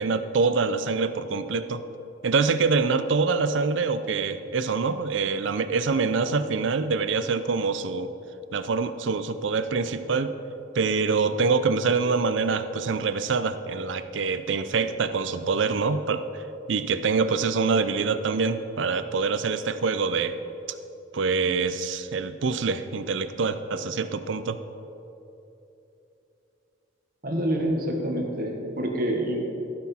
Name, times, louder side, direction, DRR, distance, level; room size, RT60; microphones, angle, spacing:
voice 1, 0.0-1.8 2.2-8.1 8.5-10.3 10.7-16.4 16.7-20.3 21.1-24.6, right 4 dB, 75° right, 11 dB, 0.5 m, -25 dB
voice 2, 27.2-29.5, right 1 dB, 50° right, 1 dB, 1.4 m, -27 dB
15.0 x 6.1 x 4.3 m, 3.0 s
head